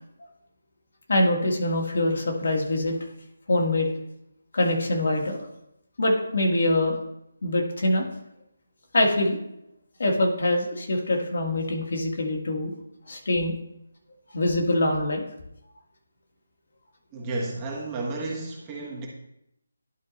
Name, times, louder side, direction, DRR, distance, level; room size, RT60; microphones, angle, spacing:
voice 1, 1.1-3.0 3.5-3.9 4.5-5.4 6.0-7.0 7.4-8.0 8.9-9.4 10.0-12.7 13.1-13.5 14.3-15.3, left 1 dB, 65° left, 0 dB, 1.8 m, -24 dB
voice 2, 17.1-19.1, right 2 dB, 20° right, -2 dB, 1.3 m, -32 dB
11.0 x 3.8 x 4.1 m, 0.81 s
figure-of-eight pair, 160°, 0 cm